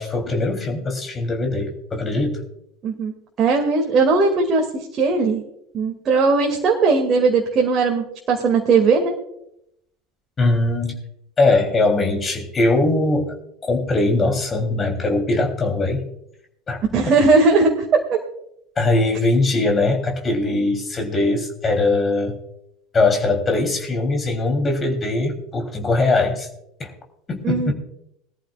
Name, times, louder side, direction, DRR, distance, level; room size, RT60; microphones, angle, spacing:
voice 1, 0.0-2.4 10.4-11.0 11.4-13.4 13.6-16.1 16.7-16.8 18.8-22.4 22.9-26.5 26.8-26.9 27.3-27.7, left 2 dB, 25° left, 4 dB, 3.3 m, -21 dB
voice 2, 3.4-4.6 4.9-5.4 5.7-9.1 16.9-18.2 27.4-27.7, right 4 dB, 35° right, 1 dB, 2.2 m, -18 dB
21.0 x 14.0 x 2.4 m, 0.77 s
figure-of-eight pair, 75°, 0 cm